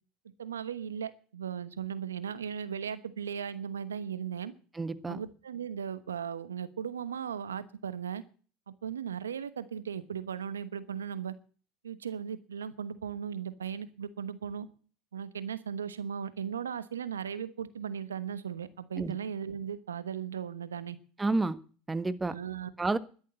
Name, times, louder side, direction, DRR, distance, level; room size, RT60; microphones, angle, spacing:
voice 1, 0.4-4.5 5.1-8.2 8.7-11.3 11.8-14.7 15.1-21.0 22.3-22.7, right 8 dB, 90° right, 15 dB, 1.1 m, -37 dB
voice 2, 4.7-5.2 19.0-19.2 21.2-21.6 21.9-22.3 22.8-23.0, right 3 dB, 15° right, 14 dB, 1.4 m, -30 dB
11.5 x 11.0 x 9.3 m, 0.40 s
hypercardioid pair, 80°, 0 cm